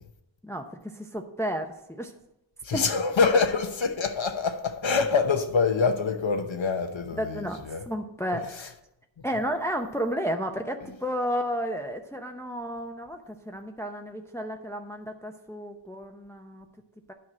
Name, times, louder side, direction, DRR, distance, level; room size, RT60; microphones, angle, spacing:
voice 1, 0.4-2.1 2.7-2.8 7.2-8.7 9.2-16.7 17.1-17.2, equal, 5° left, 0.7 m, -32 dB
voice 2, 2.6-7.8 8.3-8.4, left 5 dB, 85° left, 0.9 m, -25 dB
9.8 x 4.7 x 7.3 m
wide cardioid pair, 45°, 45 cm